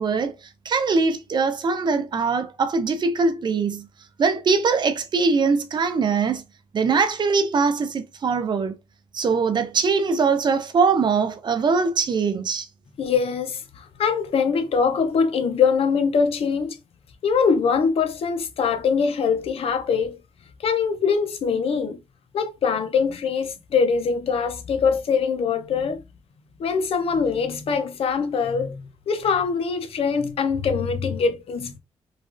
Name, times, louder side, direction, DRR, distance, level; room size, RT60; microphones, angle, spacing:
voice 1, 0.0-3.9 4.2-6.4 6.7-8.8 9.1-12.7, right 4 dB, 45° right, 0.5 m, -22 dB
voice 2, 13.0-16.8 17.2-20.2 20.6-22.0 22.3-26.0 26.6-31.8, left 5 dB, 65° left, 0.6 m, -23 dB
3.2 x 2.3 x 2.4 m
cardioid pair, 100°, 10 cm